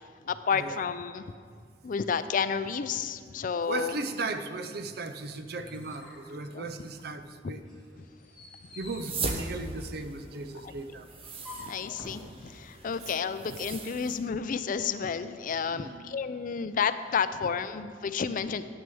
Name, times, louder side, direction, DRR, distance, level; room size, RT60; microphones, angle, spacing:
voice 1, 0.2-1.2 1.8-4.0 6.5-6.7 7.4-7.5 10.6-10.7 11.6-18.6, left 6 dB, 50° left, 13 dB, 0.4 m, -31 dB
voice 2, 3.6-7.6 8.8-11.0 15.7-16.2, right 3 dB, 60° right, 9 dB, 0.6 m, -36 dB
sound 1, 5.2-7.2 7.6-12.3, left 1 dB, 5° left, 2.4 m, -50 dB
sound 2, 8.8-14.2, right 3 dB, 30° right, 0.9 m, -39 dB
9.3 x 6.4 x 6.9 m, 2.1 s
head